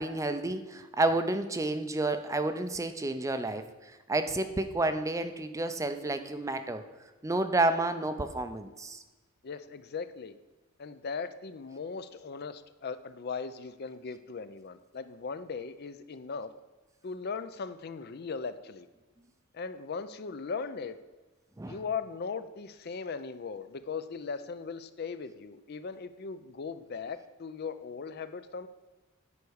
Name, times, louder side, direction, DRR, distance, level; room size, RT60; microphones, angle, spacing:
voice 1, 0.0-6.8 7.2-9.0 21.6-21.8, right 2 dB, 15° right, 9 dB, 0.5 m, -30 dB
voice 2, 9.4-10.4 10.8-16.5 17.0-18.9 19.5-21.0 21.6-28.7, left 5 dB, 50° left, 12 dB, 0.4 m, -38 dB
9.7 x 4.7 x 6.4 m, 1.2 s
head